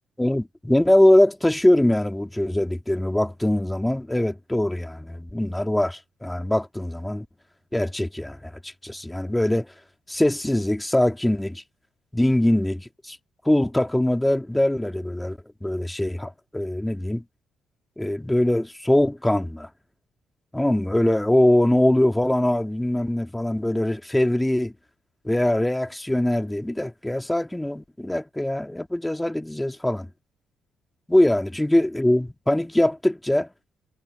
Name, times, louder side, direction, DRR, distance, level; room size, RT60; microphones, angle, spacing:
voice 1, 0.2-7.3 7.7-9.7 10.1-11.6 12.1-13.2 13.4-17.2 18.0-19.7 20.5-24.7 25.2-30.1 31.1-33.5, left 1 dB, 5° left, 2.1 m, -22 dB
cardioid pair, 90°, 0 cm